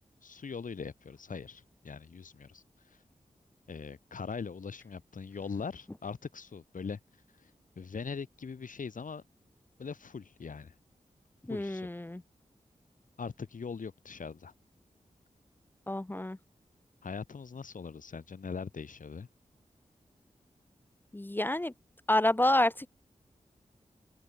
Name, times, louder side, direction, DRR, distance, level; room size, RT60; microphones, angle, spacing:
voice 1, 0.2-2.6 3.7-7.0 7.4-7.5 7.8-9.2 9.8-10.7 11.5-11.9 13.2-14.5 17.0-19.3, left 5 dB, 80° left, 4.6 m, -41 dB
voice 2, 11.5-12.2 15.9-16.4 21.1-21.7 22.1-22.9, left 1 dB, 15° left, 0.6 m, -28 dB
open air
cardioid pair, 50°, 14 cm